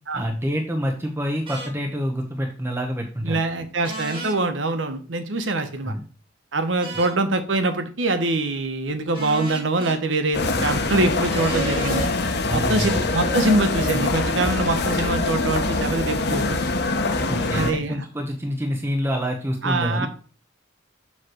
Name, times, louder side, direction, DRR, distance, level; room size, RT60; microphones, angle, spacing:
voice 1, 0.1-3.4 5.8-6.0 12.5-13.0 17.3-20.1, equal, 15° right, 2 dB, 0.9 m, -27 dB
sound 1, 1.5-1.7 3.8-4.4 6.8-7.2 9.1-10.0 11.3-12.1, right 2 dB, 30° right, 2.2 m, -33 dB
voice 2, 3.2-5.9 6.5-12.1 12.5-16.6 17.5-18.0 19.6-20.1, right 2 dB, 75° right, 8 dB, 1.0 m, -24 dB
sound 2, 10.3-17.7, left 3 dB, 60° left, 1.0 m, -24 dB
7.2 x 3.2 x 6.2 m, 0.39 s
head